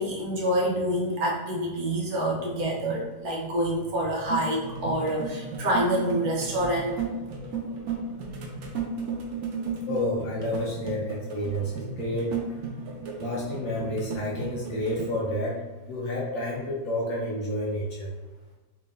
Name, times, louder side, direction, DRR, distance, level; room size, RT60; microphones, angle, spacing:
voice 1, 0.0-7.0, equal, 65° right, -3 dB, 1.1 m, -27 dB
sound 1, 4.3-15.1, right 4 dB, 85° right, 1.3 m, -34 dB
voice 2, 9.9-12.6 13.2-18.1, left 1 dB, 65° left, -4 dB, 0.9 m, -30 dB
3.8 x 3.1 x 2.5 m, 1.2 s
omnidirectional pair, 1.8 m